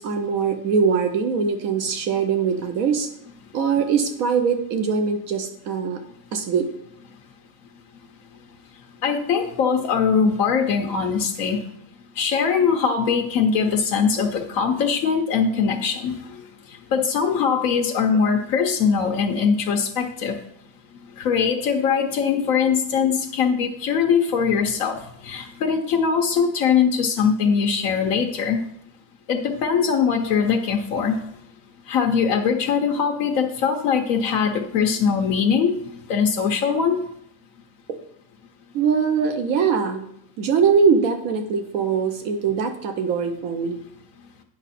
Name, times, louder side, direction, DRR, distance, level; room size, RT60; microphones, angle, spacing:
voice 1, 0.0-3.1 3.5-6.0 6.3-6.7 37.9-38.0 38.7-40.1 40.4-43.8, right 6 dB, 75° right, 6 dB, 1.1 m, -22 dB
voice 2, 9.0-11.6 12.2-16.4 16.9-20.3 21.2-28.6 29.3-31.2 31.9-37.0, left 6 dB, 75° left, 2 dB, 1.1 m, -21 dB
9.2 x 6.1 x 4.1 m, 0.72 s
omnidirectional pair, 1.5 m